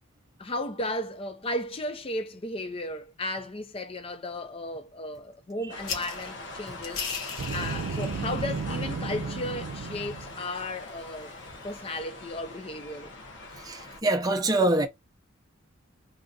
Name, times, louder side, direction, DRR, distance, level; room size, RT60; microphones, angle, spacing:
voice 1, 0.4-11.3 11.6-13.1, left 1 dB, 25° left, 0.5 m, -35 dB
sound 1, 5.7-14.0, left 2 dB, 55° left, 0.9 m, -43 dB
sound 2, 5.8-12.0, left 6 dB, 80° left, 1.0 m, -41 dB
Boom, 7.3-10.4, right 4 dB, 85° right, 0.5 m, -33 dB
voice 2, 13.6-14.9, right 2 dB, 20° right, 0.6 m, -25 dB
2.7 x 2.4 x 3.8 m
head